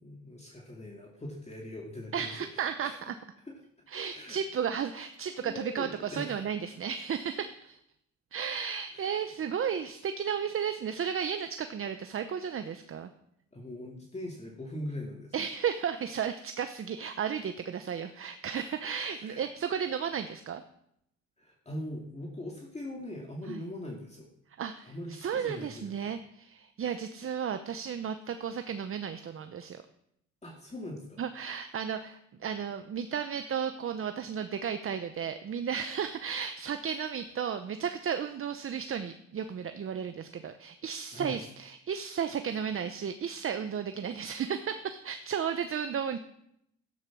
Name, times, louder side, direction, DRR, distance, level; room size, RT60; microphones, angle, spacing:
voice 1, 0.0-3.0 3.5-3.6 4.1-4.4 5.4-6.5 8.9-9.1 13.5-15.3 19.1-19.4 21.4-24.3 24.8-26.1 30.4-31.2 36.8-36.9 41.1-41.4 42.3-42.4, left 1 dB, 20° left, -1 dB, 2.5 m, -41 dB
voice 2, 2.1-3.1 3.9-7.8 8.3-13.1 15.3-20.6 23.5-23.6 24.6-29.8 31.2-46.2, right 7 dB, 45° right, 9 dB, 0.8 m, -34 dB
12.5 x 9.8 x 6.2 m, 0.74 s
cardioid pair, 90°, 30 cm